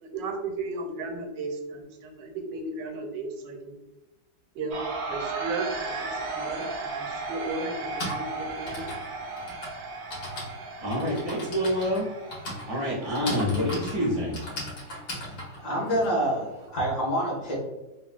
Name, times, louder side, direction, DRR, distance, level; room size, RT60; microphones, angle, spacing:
voice 1, 0.0-3.8 4.5-4.8 5.1-8.9, right 3 dB, 85° right, 3 dB, 1.2 m, -35 dB
sound 1, 4.7-16.7, right 3 dB, 60° right, 0.7 m, -36 dB
Typing, 6.6-6.7 7.7-16.8, left 1 dB, 85° left, 1.8 m, -38 dB
voice 2, 10.8-12.0 12.7-14.4, equal, 35° left, -7 dB, 0.5 m, -27 dB
voice 3, 15.6-17.5, equal, 65° left, -4 dB, 1.6 m, -27 dB
3.5 x 2.3 x 2.3 m, 1.0 s
omnidirectional pair, 1.9 m